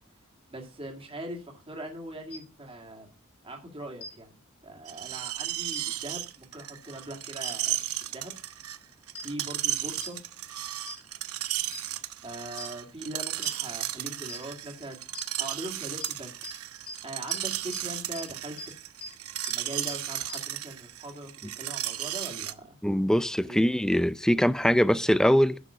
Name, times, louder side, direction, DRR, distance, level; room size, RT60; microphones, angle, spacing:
voice 1, 0.5-3.1 3.4-4.3 4.6-8.3 9.2-10.2 12.2-15.0 15.4-16.3 17.0-18.6 19.5-22.8 23.4-23.6, right 1 dB, 25° right, 2.3 m, -41 dB
sound 1, 2.3-2.4 4.0-4.1 5.7-5.8 7.4-7.5 9.1-9.2 10.0-10.1 10.9-11.0 11.7-11.8 12.6-12.7 13.4-13.5 14.3-14.4 15.1-15.2 16.0-16.1 16.4-16.5 16.9-17.0 17.3-17.4 17.7-17.8 18.1-18.2 18.6-18.7 19.0-19.1 19.4-19.5 19.9-20.0 20.3-20.4, left 2 dB, 85° left, 3.3 m, -39 dB
Screech, 4.8-22.5, right 14 dB, 90° right, 0.9 m, -34 dB
voice 2, 22.8-25.6, equal, 5° left, 0.5 m, -22 dB
11.0 x 6.3 x 6.9 m
head